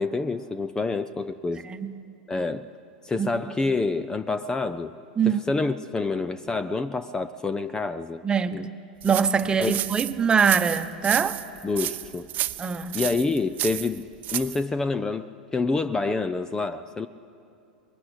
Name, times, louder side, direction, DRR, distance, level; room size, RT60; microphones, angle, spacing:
voice 1, 0.0-1.7 2.3-2.7 3.0-4.9 5.3-8.2 8.5-8.7 9.6-9.8 11.6-12.3 12.9-14.0 14.3-17.1, left 3 dB, 15° left, 14 dB, 0.7 m, -27 dB
voice 2, 8.2-8.7 9.0-11.4 12.6-13.0, right 6 dB, 20° right, 10 dB, 1.2 m, -23 dB
sound 1, 9.0-14.6, right 14 dB, 40° right, 0.8 m, -31 dB
22.5 x 22.0 x 8.2 m, 2.8 s
hypercardioid pair, 90°, 4 cm